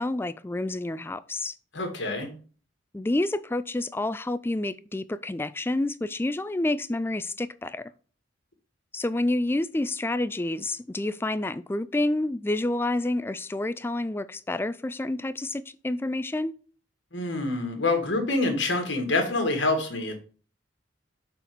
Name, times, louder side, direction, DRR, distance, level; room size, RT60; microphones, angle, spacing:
voice 1, 0.0-1.6 2.9-7.9 8.9-16.5, left 2 dB, 10° left, 0.3 m, -29 dB
voice 2, 1.7-2.3 17.1-20.1, left 2 dB, 70° left, 2.1 m, -26 dB
6.8 x 4.0 x 6.0 m
head